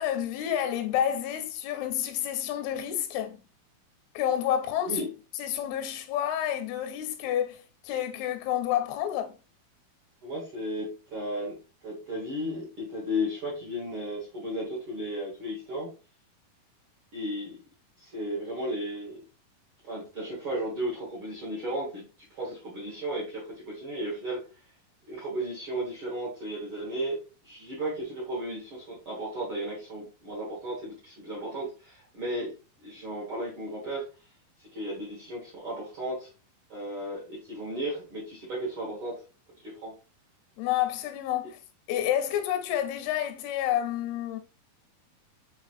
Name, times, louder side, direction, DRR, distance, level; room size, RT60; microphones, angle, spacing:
voice 1, 0.0-3.4 4.2-5.0 5.4-9.4 40.6-41.6 41.9-44.4, left 10 dB, 85° left, 2.5 m, -29 dB
voice 2, 10.2-11.5 11.8-15.9 17.1-17.6 18.0-19.2 19.8-22.0 22.3-24.4 25.1-27.2 27.4-32.5 32.8-34.0 34.7-36.3 36.7-39.2 39.6-39.9, equal, 50° right, 1.6 m, -34 dB
5.9 x 3.1 x 2.5 m
omnidirectional pair, 4.4 m